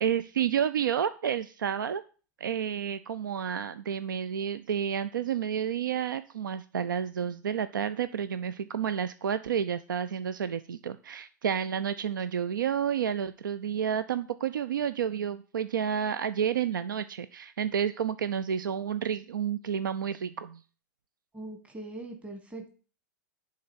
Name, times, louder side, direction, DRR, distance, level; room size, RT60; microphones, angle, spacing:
voice 1, 0.0-2.0 2.4-20.6, right 8 dB, 85° right, 14 dB, 0.4 m, -30 dB
voice 2, 21.3-22.7, right 2 dB, 10° right, 4 dB, 1.6 m, -41 dB
10.5 x 3.8 x 7.0 m, 0.38 s
hypercardioid pair, 110°, 10 cm